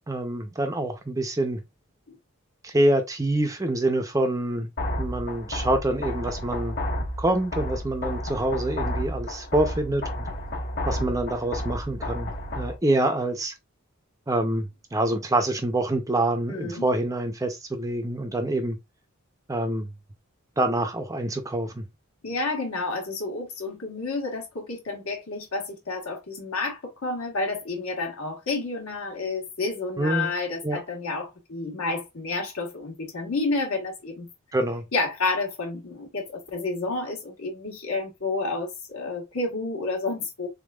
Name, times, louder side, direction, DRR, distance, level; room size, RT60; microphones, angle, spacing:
voice 1, 0.1-1.6 2.6-4.7 5.0-6.8 7.2-10.3 10.9-13.5 14.3-18.8 19.5-19.9 20.6-21.9 30.0-30.3 30.6-30.8 34.5-34.8, right 1 dB, 15° right, 0.5 m, -26 dB
sound 1, 4.8-12.8, left 1 dB, 50° left, 1.4 m, -31 dB
voice 2, 16.5-16.8 22.2-34.3 34.9-40.5, left 3 dB, 75° left, 1.3 m, -30 dB
3.6 x 3.5 x 2.3 m
head